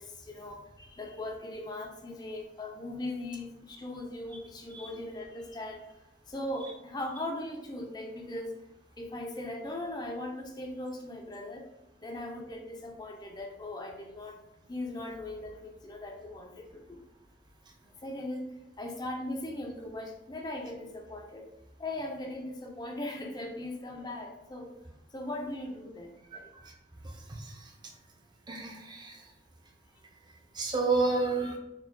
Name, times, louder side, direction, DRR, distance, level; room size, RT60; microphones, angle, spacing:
voice 1, 0.0-5.9 6.3-8.6 9.0-11.7 12.0-14.4 14.7-17.0 18.0-18.5 18.8-21.5 21.8-24.7 25.1-26.5, left 1 dB, 25° left, 1 dB, 0.6 m, -39 dB
voice 2, 26.3-26.7 27.4-27.5 28.5-29.1 30.5-31.6, right 3 dB, 25° right, 1 dB, 0.6 m, -30 dB
4.4 x 4.0 x 2.2 m, 0.91 s
head